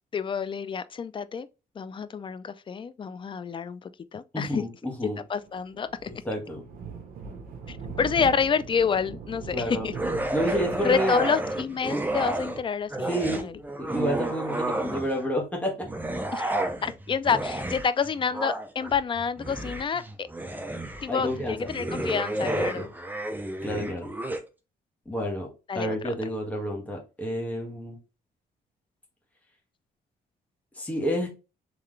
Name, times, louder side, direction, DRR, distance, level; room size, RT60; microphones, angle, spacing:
voice 1, 0.1-1.5 1.8-4.6 5.3-6.1 7.7-9.9 10.8-13.5 16.3-20.3 21.0-22.9 25.7-26.0, left 6 dB, 30° left, 0.4 m, -28 dB
voice 2, 4.3-5.2 6.1-6.7 9.5-9.9 10.3-11.2 13.1-13.5 13.8-15.7 21.1-21.7 22.4-22.9 23.6-24.1 25.0-25.5 25.7-28.0 30.8-31.3, equal, 10° left, 1.5 m, -30 dB
Thunder, 5.4-14.6, right 5 dB, 60° right, 1.2 m, -41 dB
sound 1, 9.9-12.6 12.9-15.3 15.8-24.4, right 1 dB, 10° right, 0.7 m, -31 dB
3.8 x 3.3 x 3.2 m
cardioid pair, 110°, 16 cm